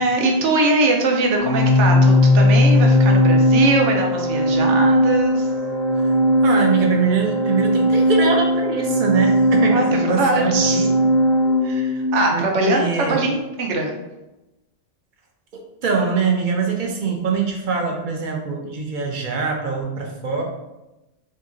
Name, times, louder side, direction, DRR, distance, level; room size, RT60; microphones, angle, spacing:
voice 1, 0.0-5.5 9.7-10.9 11.6-14.0, right 2 dB, 85° right, 2 dB, 1.0 m, -21 dB
Organ, 1.4-12.1, left 1 dB, 45° left, 0.5 m, -18 dB
voice 2, 6.4-10.9 12.3-13.2 15.5-20.4, right 5 dB, 55° right, 1 dB, 0.6 m, -23 dB
2.8 x 2.5 x 3.6 m, 0.99 s
omnidirectional pair, 1.2 m